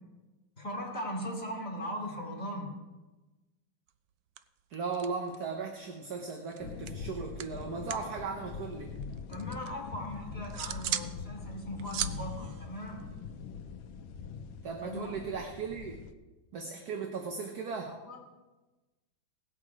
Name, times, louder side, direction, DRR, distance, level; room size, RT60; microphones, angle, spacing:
voice 1, 0.6-2.7 9.3-13.1 14.8-15.2 16.9-17.0 17.8-18.2, equal, 30° left, -2 dB, 3.3 m, -39 dB
sound 1, 3.9-4.1 4.4-5.6 5.9-8.1 8.4-9.7 10.1-11.1 11.5-13.6, right 11 dB, 75° right, 0.8 m, -39 dB
voice 2, 4.7-8.9 14.6-16.0 16.5-18.0, right 5 dB, 55° right, 3 dB, 1.5 m, -37 dB
sound 2, 6.6-16.1, left 5 dB, 85° left, 1.5 m, -43 dB
18.5 x 7.7 x 4.8 m, 1.2 s
omnidirectional pair, 2.2 m